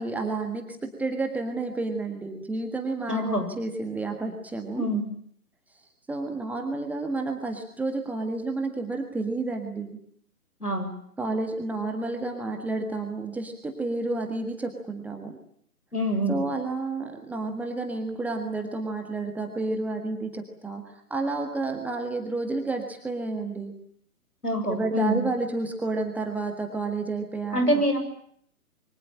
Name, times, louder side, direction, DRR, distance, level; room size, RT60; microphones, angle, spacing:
voice 1, 0.0-4.9 6.1-10.0 11.2-15.4 16.3-23.7 24.6-27.8, right 3 dB, 5° right, 3 dB, 1.6 m, -30 dB
voice 2, 3.1-3.5 4.8-5.1 10.6-10.9 15.9-16.4 24.4-25.2 27.5-28.0, equal, 80° left, 6 dB, 7.4 m, -26 dB
27.0 x 24.0 x 8.8 m, 0.65 s
figure-of-eight pair, 135°, 45 cm